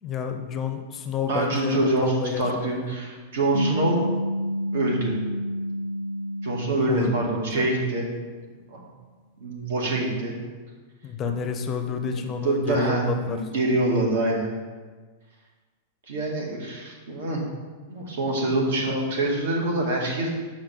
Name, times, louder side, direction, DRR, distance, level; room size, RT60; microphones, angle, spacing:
voice 1, 0.0-2.9 6.9-7.1 7.6-7.7 11.0-13.4 13.9-14.0, left 6 dB, 20° left, 5 dB, 0.5 m, -30 dB
voice 2, 1.3-4.0 4.7-5.2 6.4-8.1 8.7-8.8 9.4-10.4 12.4-14.5 16.1-17.4 17.9-20.3, right 2 dB, 80° right, 0 dB, 2.0 m, -25 dB
sound 1, 3.5-8.2, equal, 50° right, 0.6 m, -30 dB
5.9 x 5.2 x 6.4 m, 1.4 s
supercardioid pair, 170°, 0 cm